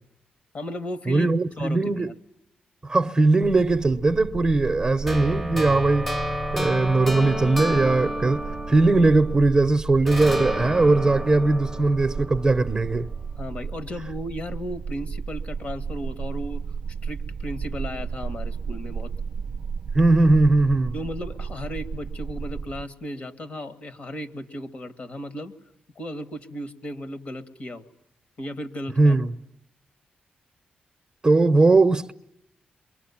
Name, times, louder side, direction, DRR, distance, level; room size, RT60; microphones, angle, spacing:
voice 1, 0.5-2.1 13.4-16.6 17.0-19.1 20.9-25.5 26.0-27.8 28.4-29.2, left 1 dB, 45° left, 2.0 m, -35 dB
voice 2, 1.1-2.1 2.8-6.1 6.5-13.1 19.9-20.9 29.0-29.3 31.2-32.1, right 2 dB, 20° right, 0.9 m, -20 dB
sound 1, 3.4-22.9, right 6 dB, 50° right, 0.9 m, -34 dB
sound 2, 5.1-9.6 10.1-13.1, equal, 5° left, 1.0 m, -31 dB
28.0 x 23.5 x 7.2 m
cardioid pair, 95°, 3 cm